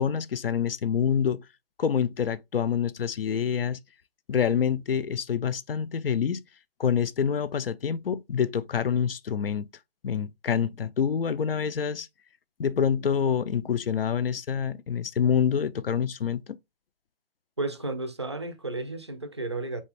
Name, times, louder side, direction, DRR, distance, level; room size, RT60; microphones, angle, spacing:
voice 1, 0.0-1.4 1.8-3.8 4.3-6.4 6.8-9.7 10.0-12.1 12.6-16.6, left 7 dB, 65° left, 0.6 m, -26 dB
voice 2, 17.6-19.8, right 2 dB, 30° right, 0.4 m, -33 dB
4.2 x 3.5 x 3.3 m
hypercardioid pair, 170°, 30 cm